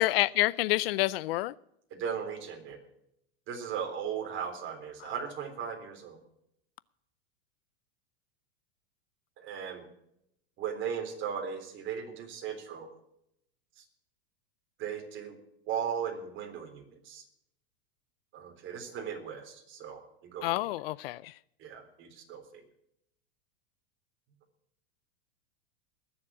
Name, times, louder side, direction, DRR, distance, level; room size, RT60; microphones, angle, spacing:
voice 1, 0.0-1.5 5.0-5.1 20.4-21.3, left 18 dB, 65° left, 0.5 m, -28 dB
voice 2, 1.9-2.8 3.5-6.2 9.4-9.9 10.6-12.9 14.8-15.4 15.7-17.2 18.3-20.0 20.3-20.5 21.6-22.6, right 7 dB, 40° right, 3.7 m, -37 dB
20.5 x 7.4 x 6.1 m
supercardioid pair, 130°, 32 cm